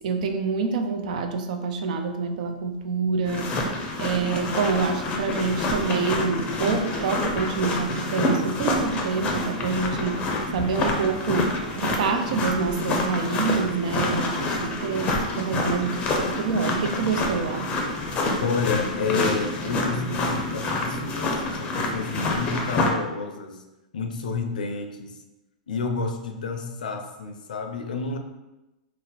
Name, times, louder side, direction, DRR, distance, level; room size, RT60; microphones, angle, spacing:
voice 1, 0.0-17.8, right 5 dB, 65° right, 6 dB, 0.4 m, -27 dB
sound 1, 3.3-22.9, left 2 dB, 30° left, 0.5 m, -27 dB
voice 2, 18.4-23.6 23.9-25.2 25.7-28.2, left 4 dB, 85° left, 5 dB, 0.4 m, -30 dB
2.6 x 2.0 x 3.8 m, 1.0 s
hypercardioid pair, 125°, 4 cm